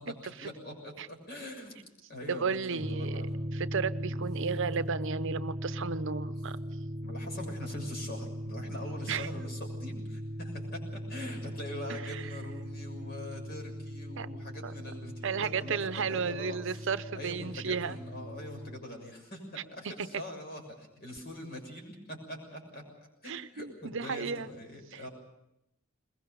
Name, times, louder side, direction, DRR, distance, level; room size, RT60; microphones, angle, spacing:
voice 1, 0.0-1.8 2.1-3.4 4.1-4.2 7.0-16.8 17.1-22.8 23.2-25.1, left 1 dB, 50° left, 2 dB, 6.6 m, -43 dB
voice 2, 2.3-3.2 3.5-6.6 9.1-9.3 11.9-12.2 14.2-14.3 14.6-14.7 15.2-18.0 23.3-24.5 24.9-25.0, right 5 dB, 65° right, 13 dB, 0.7 m, -33 dB
sound 1, 2.8-18.8, equal, 30° right, 1.2 m, -39 dB
22.5 x 21.0 x 6.9 m, 0.86 s
head